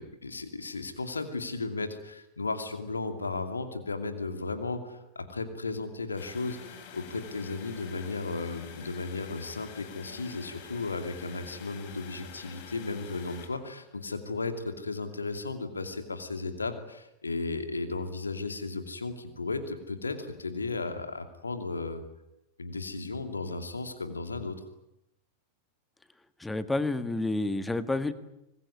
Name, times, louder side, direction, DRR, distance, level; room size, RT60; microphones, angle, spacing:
voice 1, 0.0-22.0 22.6-24.6, left 3 dB, 75° left, 7 dB, 2.6 m, -35 dB
sound 1, 6.2-13.5, left 7 dB, 45° left, 5.8 m, -47 dB
voice 2, 26.4-28.1, left 2 dB, 5° left, 12 dB, 1.7 m, -29 dB
25.0 x 21.0 x 9.7 m, 0.86 s
figure-of-eight pair, 90°, 0 cm